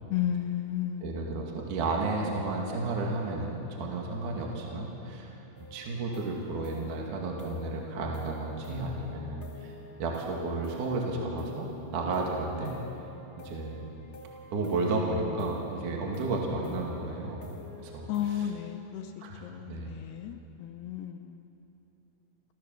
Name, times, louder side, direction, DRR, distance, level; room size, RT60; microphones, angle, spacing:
voice 1, 0.1-1.2 18.1-19.1 19.4-21.4, left 10 dB, 75° left, 6 dB, 2.5 m, -33 dB
voice 2, 1.0-5.3 5.7-9.7 10.0-12.7 13.4-13.9 14.5-17.5 17.8-18.5 19.2-20.0, right 2 dB, 50° right, -1 dB, 3.2 m, -32 dB
sound 1, 5.5-18.5, left 2 dB, 35° left, 1.4 m, -48 dB
27.5 x 15.0 x 7.2 m, 3.0 s
omnidirectional pair, 5.3 m